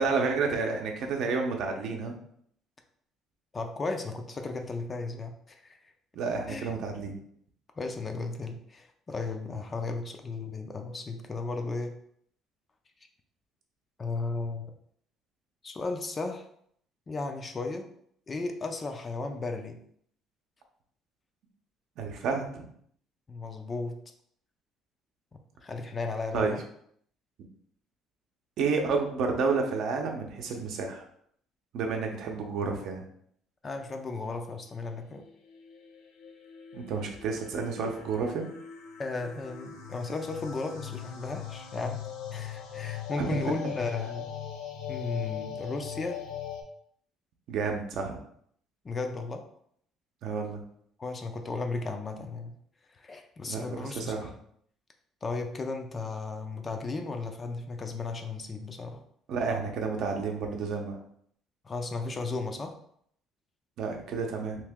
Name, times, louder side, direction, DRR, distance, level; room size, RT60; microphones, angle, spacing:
voice 1, 0.0-2.2 6.1-7.2 22.0-22.6 26.3-26.6 28.6-31.0 31.7-33.0 36.7-38.4 43.2-43.4 47.5-48.2 50.2-50.6 53.5-54.3 59.3-61.0 63.8-64.6, right 4 dB, 60° right, 3 dB, 0.6 m, -30 dB
voice 2, 3.5-5.8 6.5-6.7 7.8-11.9 14.0-14.7 15.6-16.4 17.1-17.9 18.3-19.8 23.3-24.0 25.6-26.6 33.6-35.3 39.0-42.0 42.3-44.3 44.9-46.2 48.8-49.4 51.0-52.5 53.0-54.3 55.2-59.0 61.6-62.7, left 3 dB, 25° left, 5 dB, 0.3 m, -35 dB
sound 1, 35.2-46.6, left 10 dB, 80° left, 0.5 m, -40 dB
2.9 x 2.8 x 3.5 m, 0.66 s
cardioid pair, 150°, 0 cm